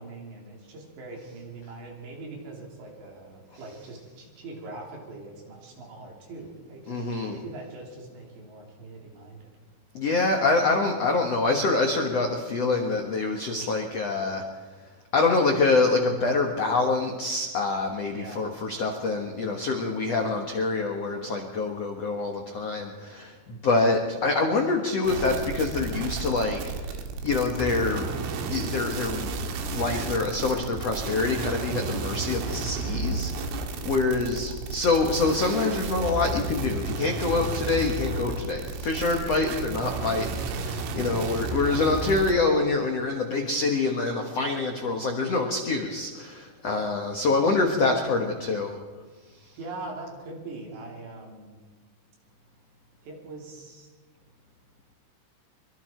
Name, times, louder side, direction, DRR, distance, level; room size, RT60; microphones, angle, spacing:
voice 1, 0.0-9.5 18.1-18.6 33.9-34.0 34.3-34.6 41.0-41.4 49.6-51.6 53.0-53.9, right 2 dB, 65° right, -1 dB, 5.8 m, -42 dB
voice 2, 6.9-7.4 9.9-14.4 15.1-28.1 28.5-29.3 29.7-48.8 49.4-49.5, left 3 dB, 85° left, 3 dB, 1.4 m, -26 dB
sound 1, 25.0-42.3, right 4 dB, 90° right, 4.3 m, -32 dB
24.5 x 23.5 x 4.6 m, 1.4 s
omnidirectional pair, 5.6 m